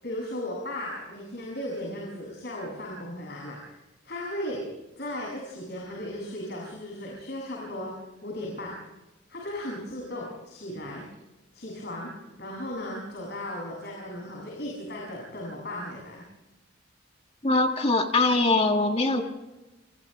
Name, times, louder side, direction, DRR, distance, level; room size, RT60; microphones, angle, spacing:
voice 1, 0.0-4.6 5.0-7.9 8.2-8.7 9.3-11.0 11.5-12.1 12.4-16.2, left 1 dB, 55° left, -3 dB, 7.6 m, -36 dB
voice 2, 17.4-19.3, left 2 dB, 30° left, 4 dB, 1.7 m, -22 dB
29.0 x 28.5 x 3.4 m, 1.0 s
head